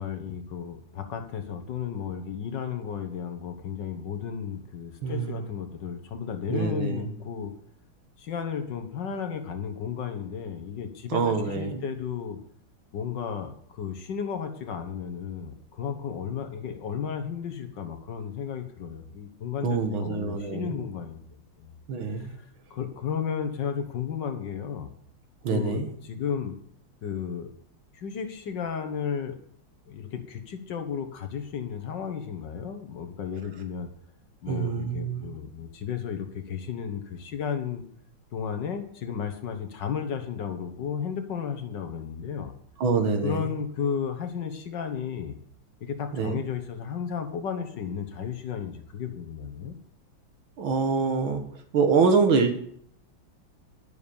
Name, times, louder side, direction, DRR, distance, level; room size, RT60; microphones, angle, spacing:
voice 1, 0.0-7.5 8.2-12.4 12.9-21.2 21.6-21.7 22.2-24.9 25.5-26.5 27.0-27.5 27.9-29.4 29.8-33.9 34.4-37.8 38.3-42.5 43.2-45.4 45.8-49.8, left 7 dB, 65° left, 7 dB, 1.7 m, -33 dB
voice 2, 5.0-5.4 6.5-7.1 11.1-11.8 19.6-20.8 21.9-22.3 25.4-25.9 34.5-35.3 42.8-43.4 46.1-46.4 50.6-52.6, right 5 dB, 80° right, 5 dB, 2.1 m, -25 dB
11.5 x 6.9 x 7.0 m, 0.64 s
omnidirectional pair, 2.2 m